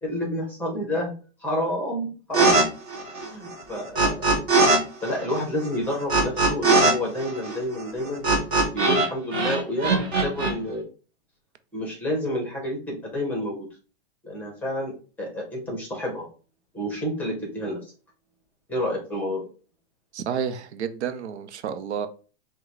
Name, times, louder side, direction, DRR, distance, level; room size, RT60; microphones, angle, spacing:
voice 1, 0.0-1.1 1.4-2.6 3.2-4.3 5.0-8.3 8.7-10.8 11.7-13.7 14.2-16.3 16.7-17.8 18.7-19.5, equal, 5° left, 0.9 m, -29 dB
sound 1, 2.3-2.6 2.9-4.8 5.0-9.1 9.3-10.5, right 3 dB, 15° right, 0.5 m, -21 dB
voice 2, 20.1-22.1, right 8 dB, 80° right, 0.7 m, -30 dB
5.7 x 2.2 x 3.2 m
hypercardioid pair, 165°, 33 cm